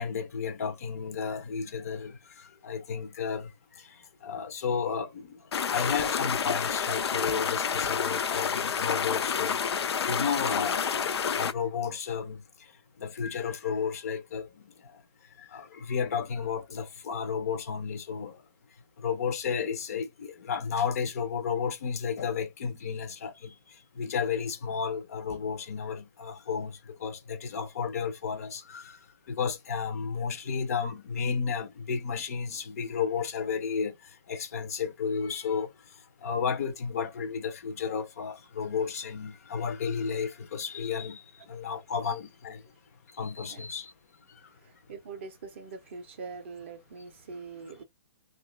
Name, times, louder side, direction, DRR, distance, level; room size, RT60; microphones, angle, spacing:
voice 1, 0.0-3.5 4.2-5.4 5.7-9.6 10.0-10.9 11.3-12.4 13.0-15.0 15.4-18.4 19.0-23.5 24.0-29.0 29.3-34.0 34.3-35.7 36.2-42.6 43.1-43.9, left 6 dB, 40° left, 0.4 m, -32 dB
sound 1, 5.5-11.5, left 7 dB, 90° left, 0.5 m, -29 dB
voice 2, 44.9-47.8, right 4 dB, 30° right, 0.4 m, -42 dB
2.8 x 2.2 x 3.1 m
hypercardioid pair, 175°, 13 cm